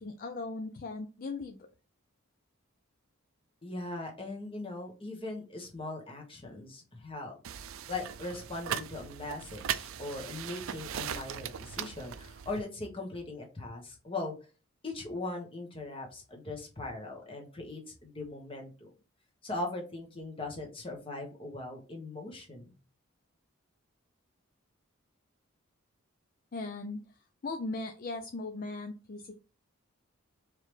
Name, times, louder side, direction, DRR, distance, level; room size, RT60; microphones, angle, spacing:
voice 1, 0.0-1.7 26.5-27.0 27.4-29.4, left 3 dB, 45° left, 6 dB, 0.4 m, -38 dB
voice 2, 3.6-7.4 7.9-14.4 14.8-18.9 19.4-22.7, left 2 dB, 25° left, 1 dB, 1.2 m, -40 dB
sound 1, 7.4-12.6, right 9 dB, 75° right, 0.4 m, -39 dB
4.6 x 3.3 x 3.2 m, 0.34 s
head